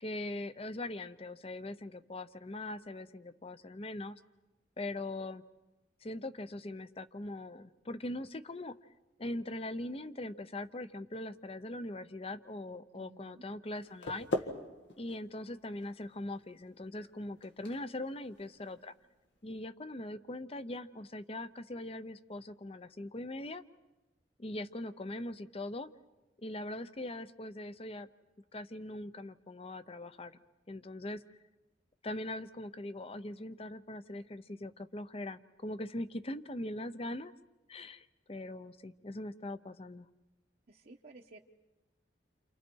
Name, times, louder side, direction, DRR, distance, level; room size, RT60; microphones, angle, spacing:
voice 1, 0.0-4.2 4.8-5.4 6.0-8.8 9.2-14.3 15.0-18.9 19.4-23.6 24.4-25.9 26.4-28.1 28.5-30.4 30.7-31.4 32.0-37.3 37.7-40.1, left 1 dB, 35° left, 13 dB, 0.7 m, -41 dB
voice 2, 12.9-13.4 40.7-41.4, right 2 dB, 55° right, -1 dB, 1.0 m, -55 dB
sound 1, 13.7-19.6, left 1 dB, 85° left, 2.0 m, -43 dB
29.5 x 28.0 x 4.6 m, 1.1 s
head